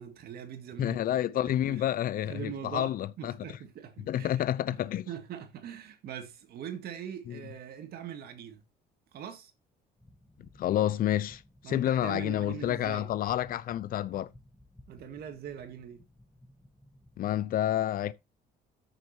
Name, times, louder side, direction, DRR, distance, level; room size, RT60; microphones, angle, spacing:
voice 1, 0.0-1.0 1.4-1.8 2.2-4.4 4.7-4.8 5.1-8.6 9.1-9.5 11.6-13.1 14.9-16.1, right 8 dB, 65° right, 2.1 m, -42 dB
voice 2, 0.8-3.4 4.1-5.1 7.3-7.4 10.4-14.3 17.2-18.1, left 12 dB, 60° left, 0.7 m, -29 dB
sound 1, 10.0-17.4, left 1 dB, 5° left, 1.1 m, -57 dB
13.5 x 6.6 x 2.9 m
cardioid pair, 110°, 17 cm